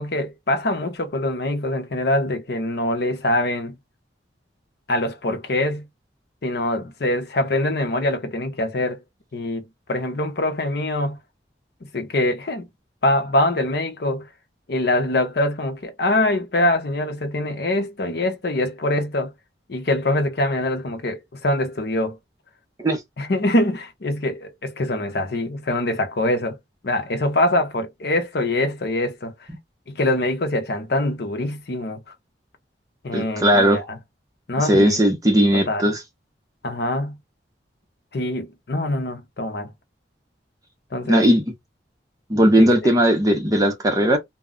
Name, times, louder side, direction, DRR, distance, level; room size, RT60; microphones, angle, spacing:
voice 1, 0.0-3.8 4.9-5.9 6.4-9.0 9.3-9.6 9.9-11.2 11.9-12.7 13.0-14.3 14.7-19.3 19.7-22.2 23.2-26.6 26.8-29.3 29.9-32.0 33.0-34.0 34.5-35.0 35.5-35.9 36.6-37.2 38.1-39.7 40.9-41.3 42.6-42.9, left 1 dB, 60° left, 0.7 m, -24 dB
voice 2, 33.1-33.8 34.6-36.0 41.0-41.4 42.3-44.2, equal, 20° right, 0.6 m, -17 dB
2.2 x 2.0 x 3.6 m
head